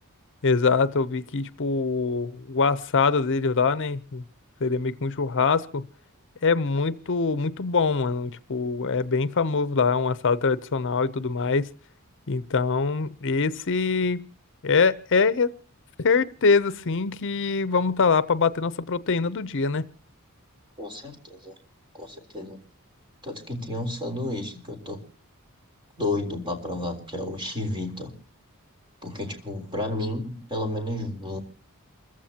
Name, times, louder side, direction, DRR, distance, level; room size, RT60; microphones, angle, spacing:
voice 1, 0.4-4.2 4.6-5.8 6.4-11.7 12.3-14.2 14.6-15.5 16.0-19.8, left 4 dB, 60° left, 0.7 m, -24 dB
voice 2, 20.8-21.5 21.9-22.6 23.2-25.0 26.0-28.1 29.0-31.4, left 1 dB, 20° right, 3.7 m, -31 dB
28.5 x 15.0 x 2.8 m
head